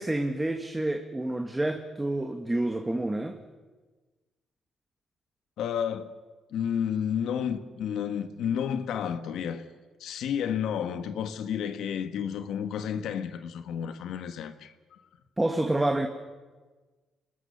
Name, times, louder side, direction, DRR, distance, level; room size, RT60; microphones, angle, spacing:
voice 1, 0.0-3.4 15.4-16.1, right 1 dB, 10° right, 1.7 m, -28 dB
voice 2, 5.6-6.1 6.5-9.6 10.0-15.0, left 8 dB, 80° left, 1.4 m, -31 dB
27.0 x 20.5 x 6.7 m
cardioid pair, 90°, 0 cm